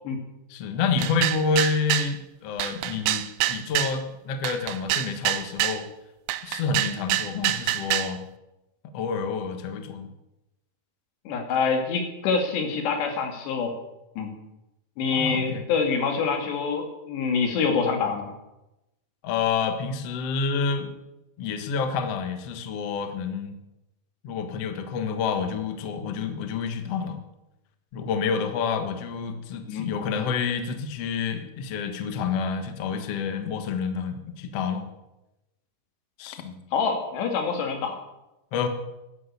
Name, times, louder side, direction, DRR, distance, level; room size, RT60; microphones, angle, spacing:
voice 1, 0.5-5.9 6.4-8.2 8.9-10.1 15.1-15.6 19.2-20.9 21.4-23.5 24.2-27.2 27.9-34.9 36.2-36.6 38.5-38.7, left 5 dB, 60° left, 7 dB, 1.7 m, -28 dB
sound 1, 1.0-2.1 2.6-4.0 4.4-5.8 6.3-8.1, right 14 dB, 80° right, 2.4 m, -26 dB
voice 2, 11.3-13.7 14.2-14.3 15.0-18.3 29.7-29.9 36.7-38.0, left 5 dB, 85° left, 4 dB, 4.4 m, -26 dB
12.5 x 11.0 x 8.3 m, 0.94 s
omnidirectional pair, 4.8 m